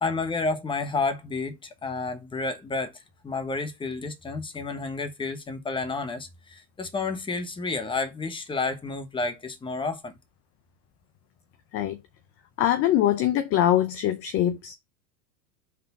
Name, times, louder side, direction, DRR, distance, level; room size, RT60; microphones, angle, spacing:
voice 1, 0.0-10.1, left 3 dB, 10° left, 1.1 m, -30 dB
voice 2, 12.6-14.7, left 12 dB, 30° left, 0.6 m, -23 dB
5.9 x 3.6 x 5.8 m
supercardioid pair, 125°, 48 cm